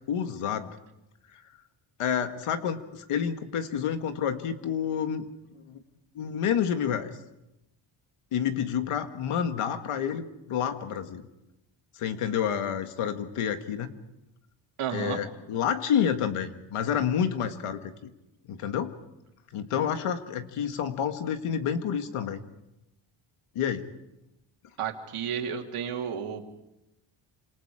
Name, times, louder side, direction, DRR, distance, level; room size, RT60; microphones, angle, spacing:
voice 1, 0.1-0.8 2.0-5.3 5.7-5.8 6.2-7.1 8.3-11.2 12.0-13.9 14.9-17.9 18.5-19.0 19.5-22.4 23.6-23.9, left 8 dB, 90° left, 8 dB, 1.9 m, -29 dB
voice 2, 14.8-15.2 24.8-26.4, right 8 dB, 85° right, 3 dB, 2.9 m, -32 dB
29.0 x 27.0 x 5.0 m, 0.92 s
cardioid pair, 130°, 49 cm